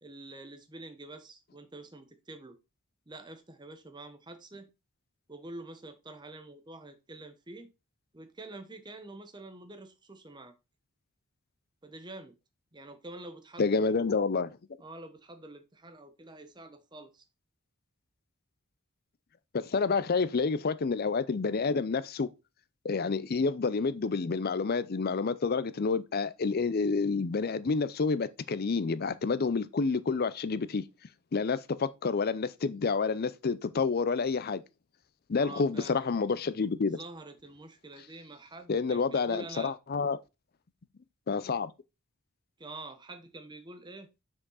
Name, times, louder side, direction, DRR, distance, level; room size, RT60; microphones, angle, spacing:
voice 1, 0.0-2.6 3.1-4.7 5.3-7.7 8.1-10.5 11.8-12.3 12.7-13.9 14.8-17.2 35.4-36.1 36.9-39.7 42.6-44.1, right 2 dB, 20° right, 0.9 m, -47 dB
voice 2, 13.6-14.6 19.5-22.3 22.8-30.8 31.3-34.6 35.3-37.0 38.7-40.2 41.3-41.7, left 4 dB, 45° left, 0.5 m, -29 dB
6.1 x 5.0 x 4.0 m
head